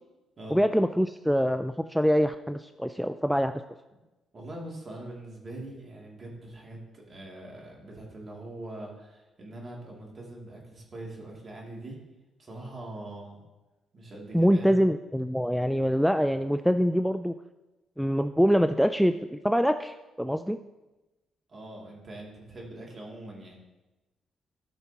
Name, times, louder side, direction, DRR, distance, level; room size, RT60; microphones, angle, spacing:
voice 1, 0.5-3.5 14.3-17.3 18.0-20.6, equal, ahead, 9 dB, 0.3 m, -24 dB
voice 2, 4.3-12.0 12.4-13.4 13.9-14.8 21.5-23.6, right 1 dB, 40° right, -2 dB, 2.4 m, -42 dB
13.5 x 5.8 x 2.9 m, 1.1 s
cardioid pair, 90°, 0 cm